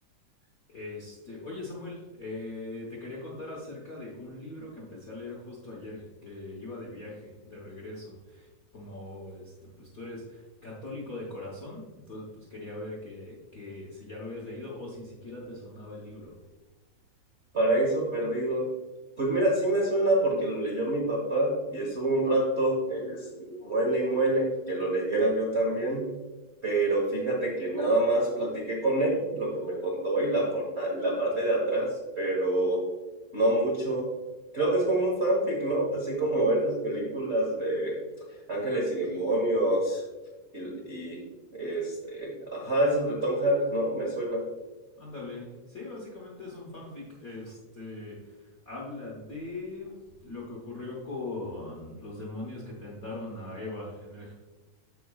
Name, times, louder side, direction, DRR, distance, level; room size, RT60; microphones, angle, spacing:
voice 1, 0.7-8.5 8.7-16.4 45.0-54.3, left 2 dB, 60° left, -4 dB, 0.9 m, -41 dB
voice 2, 17.5-18.7 19.2-26.1 26.6-32.9 33.3-34.1 34.5-38.0 38.5-40.0 40.5-41.2 41.5-44.4, right 1 dB, 70° right, -4 dB, 0.6 m, -27 dB
13.5 x 4.7 x 2.4 m, 1.2 s
omnidirectional pair, 3.3 m